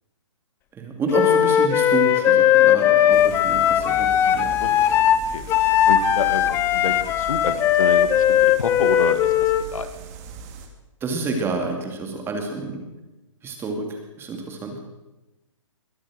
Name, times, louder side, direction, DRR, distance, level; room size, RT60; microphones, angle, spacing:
voice 1, 0.7-4.5 11.0-12.8 13.4-14.8, right 3 dB, 15° right, 3 dB, 2.4 m, -29 dB
Wind instrument woodwind instrument, 1.1-9.7, left 10 dB, 15° left, 0.5 m, -18 dB
sound 1, 3.1-10.7, right 5 dB, 30° right, 2.0 m, -39 dB
voice 2, 4.3-5.0 5.3-5.5 5.9-9.9, left 4 dB, 90° left, 10 dB, 1.8 m, -29 dB
21.5 x 8.7 x 6.3 m, 1.0 s
hypercardioid pair, 150°, 17 cm